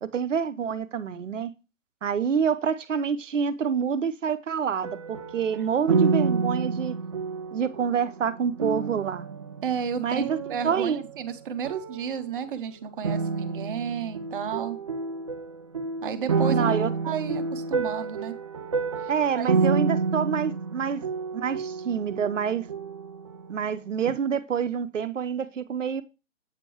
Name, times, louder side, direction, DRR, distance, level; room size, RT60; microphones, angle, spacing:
voice 1, 0.0-1.5 2.0-7.0 7.5-9.2 10.0-10.4 10.6-11.0 16.5-16.9 19.1-21.0 21.3-22.7 23.5-26.0, right 7 dB, 70° right, 0.8 m, -27 dB
sound 1, 4.8-11.4 11.6-12.5 13.0-23.7 24.0-24.1, right 4 dB, 25° right, 0.4 m, -29 dB
voice 2, 9.6-14.8 16.0-16.8 17.0-18.4 19.0-19.5, right 7 dB, 40° right, 0.9 m, -32 dB
8.2 x 5.2 x 2.9 m
figure-of-eight pair, 135°, 39 cm